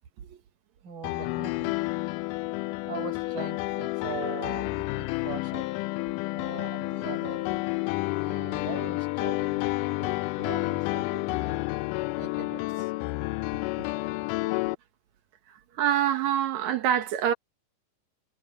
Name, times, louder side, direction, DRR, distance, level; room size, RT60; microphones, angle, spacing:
voice 1, 0.8-1.8 2.1-2.2 2.9-5.7 6.3-7.6 8.2-11.7 12.2-12.9, right 8 dB, 80° right, 7.0 m, -41 dB
Piano, 1.0-14.7, left 22 dB, 80° left, 2.0 m, -30 dB
voice 2, 15.8-17.3, right 10 dB, 65° right, 2.3 m, -25 dB
omnidirectional pair, 3.9 m